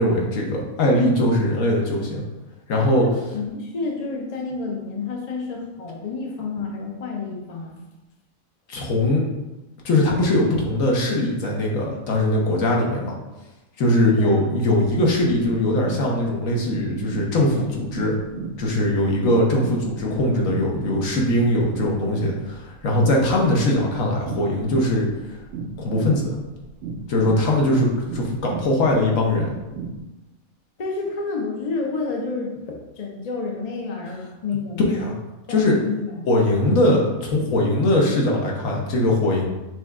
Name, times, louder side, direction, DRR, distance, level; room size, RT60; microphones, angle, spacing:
voice 1, 0.0-2.2 2.7-3.1 8.7-9.2 9.8-13.2 13.8-18.2 18.6-25.1 25.8-26.4 27.1-29.5 34.9-35.2 35.5-35.8 36.3-39.4, left 1 dB, 75° left, -1 dB, 1.3 m, -21 dB
voice 2, 3.0-7.8 14.2-14.5 30.8-34.9 35.5-36.3, left 4 dB, 40° left, 0 dB, 0.6 m, -29 dB
sound 1, 15.2-30.0, right 4 dB, 65° right, 0.8 m, -35 dB
6.1 x 2.3 x 3.6 m, 1.0 s
omnidirectional pair, 1.4 m